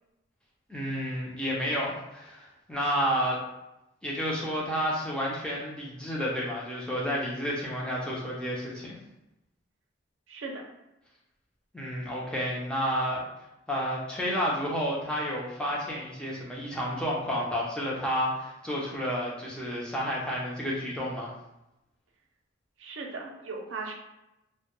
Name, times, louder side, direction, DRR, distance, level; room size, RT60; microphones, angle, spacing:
voice 1, 0.7-3.4 4.0-8.9 11.7-13.2 13.7-21.3, equal, 5° left, -5 dB, 0.4 m, -30 dB
voice 2, 10.3-10.6 22.8-23.9, right 3 dB, 85° right, 1 dB, 0.5 m, -37 dB
2.1 x 2.1 x 2.9 m, 0.91 s
head